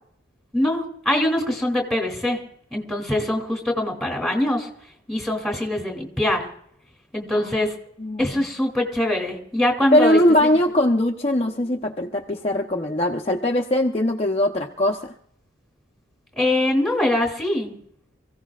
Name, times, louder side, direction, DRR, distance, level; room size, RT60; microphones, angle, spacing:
voice 1, 0.5-2.4 2.7-4.7 5.1-6.5 7.1-7.7 8.2-10.2 16.4-17.8, left 1 dB, ahead, 2 dB, 2.9 m, -23 dB
voice 2, 7.3-7.7 8.0-8.4 9.9-15.1, left 1 dB, 30° left, 0 dB, 0.9 m, -21 dB
27.5 x 16.0 x 2.4 m, 0.70 s
head